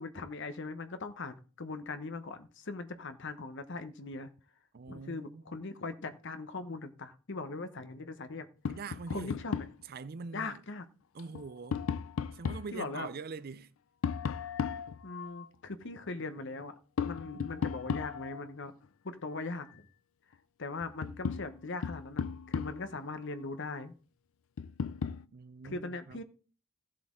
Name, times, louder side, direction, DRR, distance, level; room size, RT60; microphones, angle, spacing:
voice 1, 0.0-4.3 4.9-8.5 9.1-9.6 10.3-10.8 12.7-13.1 15.0-16.7 17.0-18.7 19.0-19.9 20.6-23.9 25.6-26.2, left 3 dB, 60° left, 1.0 m, -40 dB
voice 2, 4.7-5.5 8.7-9.4 9.8-10.6 11.1-11.9 12.3-13.7 25.3-26.2, right 4 dB, 50° right, 0.5 m, -44 dB
Tap, 8.6-9.8 11.2-12.7 14.0-15.5 17.0-18.5 20.3-20.4 20.8-23.0 24.6-25.2, left 6 dB, 75° left, 0.4 m, -36 dB
15.5 x 7.6 x 3.7 m
head